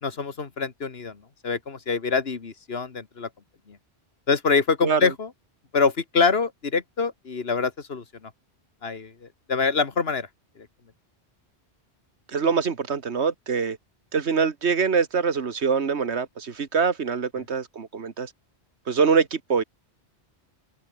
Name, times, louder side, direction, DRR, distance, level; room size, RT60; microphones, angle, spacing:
voice 1, 0.0-1.2 1.4-3.3 4.3-5.3 5.7-8.0 8.8-10.3, left 5 dB, 65° left, 1.9 m, -25 dB
voice 2, 4.8-5.1 12.3-13.8 14.1-18.3 18.9-19.6, right 5 dB, 80° right, 1.8 m, -24 dB
omnidirectional pair, 1.1 m